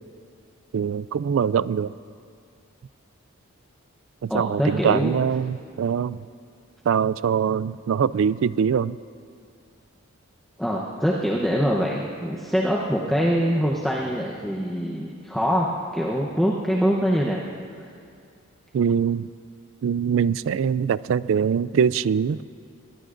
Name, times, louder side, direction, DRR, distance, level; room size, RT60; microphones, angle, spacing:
voice 1, 0.7-1.9 4.2-6.2 6.9-9.0 18.7-19.3 19.8-22.4, right 7 dB, 65° right, 18 dB, 0.3 m, -23 dB
voice 2, 4.3-5.1 10.6-15.7 15.9-17.4 17.8-17.9, equal, ahead, -3 dB, 0.8 m, -24 dB
21.5 x 19.5 x 2.6 m, 2.4 s
head